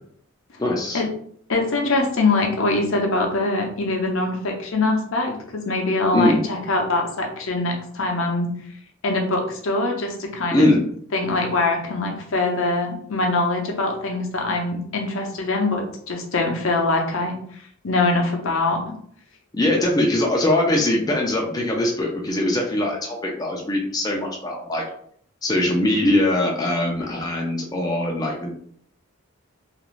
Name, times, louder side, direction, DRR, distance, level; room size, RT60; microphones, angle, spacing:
voice 1, 0.6-1.0 6.1-6.4 10.5-10.8 19.5-24.8 25.4-28.5, left 1 dB, 20° left, -1 dB, 0.4 m, -21 dB
voice 2, 1.5-8.5 9.0-10.7 11.1-17.4 17.8-18.8, left 2 dB, 70° left, 1 dB, 0.6 m, -23 dB
2.5 x 2.4 x 3.0 m, 0.62 s
head